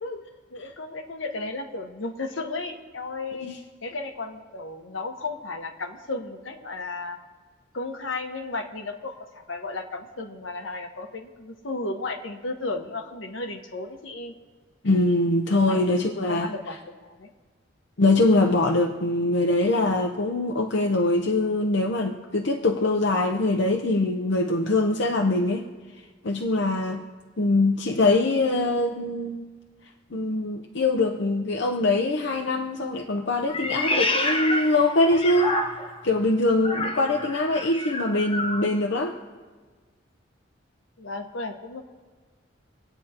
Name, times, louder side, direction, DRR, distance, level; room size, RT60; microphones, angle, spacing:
voice 1, 0.5-3.5 3.8-7.2 7.7-14.3 15.6-15.9 16.3-17.3 41.0-41.8, left 3 dB, 80° left, 4 dB, 1.2 m, -34 dB
voice 2, 14.8-16.5 18.0-25.7 26.2-27.0 27.4-29.5 30.1-35.6 36.0-39.1, left 2 dB, 65° left, 3 dB, 0.7 m, -23 dB
Meow, 33.5-36.0 36.6-38.7, left 1 dB, 30° left, 1.0 m, -28 dB
27.0 x 9.0 x 2.9 m, 1.4 s
head